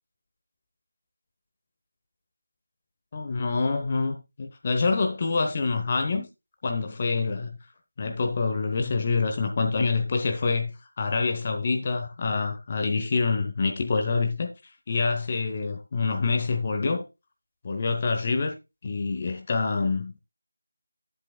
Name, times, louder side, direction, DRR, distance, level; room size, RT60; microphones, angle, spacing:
voice 1, 3.1-6.3 6.6-7.6 8.0-10.7 11.0-14.5 14.9-17.1 17.6-18.5 18.8-20.2, left 4 dB, 25° left, 0.8 m, -26 dB
10.5 x 7.9 x 2.2 m
figure-of-eight pair, 165°, 0 cm